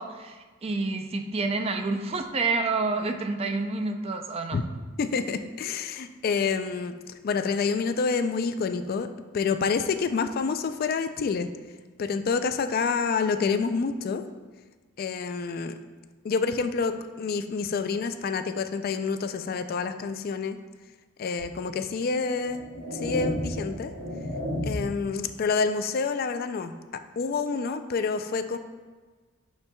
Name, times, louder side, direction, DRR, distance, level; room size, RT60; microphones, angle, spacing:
voice 1, 0.0-4.6, right 3 dB, 30° right, 5 dB, 0.4 m, -28 dB
voice 2, 5.0-6.9 7.2-9.1 9.3-11.5 12.0-14.2 15.0-15.7 16.2-20.6 21.2-23.9 24.6-28.6, left 5 dB, 45° left, 9 dB, 0.3 m, -28 dB
sound 1, 21.4-21.5 22.3-25.0, left 1 dB, 85° right, 1.9 m, -32 dB
10.5 x 4.4 x 2.2 m, 1.4 s
head